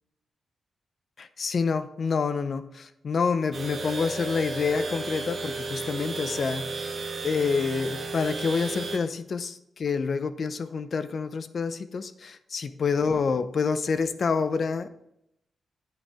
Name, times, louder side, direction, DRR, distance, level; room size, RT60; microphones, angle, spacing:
voice 1, 1.2-6.9 7.2-14.9, left 5 dB, 45° left, 12 dB, 0.6 m, -27 dB
sound 1, 3.5-9.0, right 3 dB, 40° right, 1.4 m, -34 dB
8.5 x 8.4 x 3.5 m, 0.81 s
wide cardioid pair, 155°, 0 cm